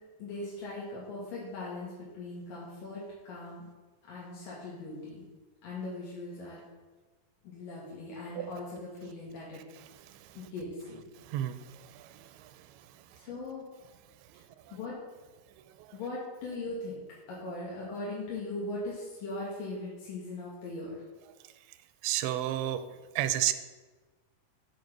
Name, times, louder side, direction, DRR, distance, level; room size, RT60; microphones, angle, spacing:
voice 1, 0.2-3.7 4.0-5.2 5.6-6.6 7.4-9.6 10.3-11.0 13.2-13.6 14.7-15.0 15.9-21.0, left 2 dB, 65° left, -6 dB, 3.4 m, -39 dB
voice 2, 22.0-22.9 23.2-23.5, right 13 dB, 90° right, 11 dB, 2.5 m, -30 dB
7.8 x 7.7 x 6.1 m, 1.3 s
omnidirectional pair, 4.4 m